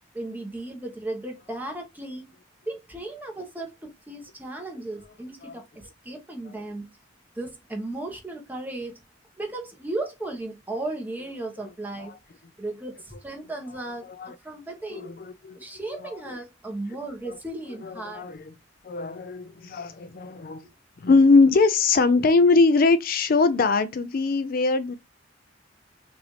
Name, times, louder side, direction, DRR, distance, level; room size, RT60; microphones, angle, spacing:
voice 1, 0.1-2.3 2.7-6.8 7.3-9.0 9.4-12.1 12.6-14.1 14.4-15.1 15.5-18.3, right 2 dB, 10° right, 1.2 m, -35 dB
voice 2, 14.0-14.4 14.9-15.6 15.9-16.4 17.2-17.4 17.8-18.5 18.8-20.6 21.0-25.0, left 3 dB, 50° left, 0.4 m, -22 dB
6.0 x 2.6 x 3.2 m
head